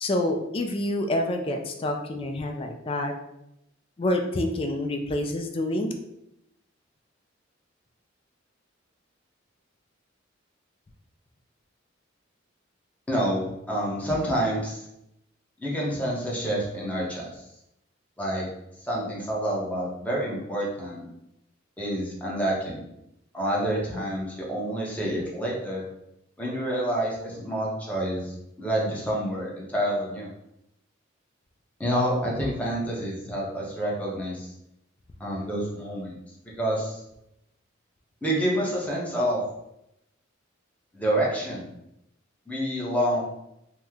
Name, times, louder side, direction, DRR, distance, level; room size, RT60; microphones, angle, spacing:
voice 1, 0.0-3.1 4.0-6.0, left 1 dB, 30° left, 3 dB, 0.3 m, -27 dB
voice 2, 13.1-14.8 15.6-17.4 18.2-18.5 18.8-21.1 21.8-22.8 23.3-25.8 26.4-30.3 31.8-34.5 35.2-36.1 36.4-37.0 38.2-39.4 40.9-41.7 42.5-43.2, equal, 5° left, -4 dB, 0.7 m, -28 dB
2.9 x 2.0 x 3.5 m, 0.83 s
head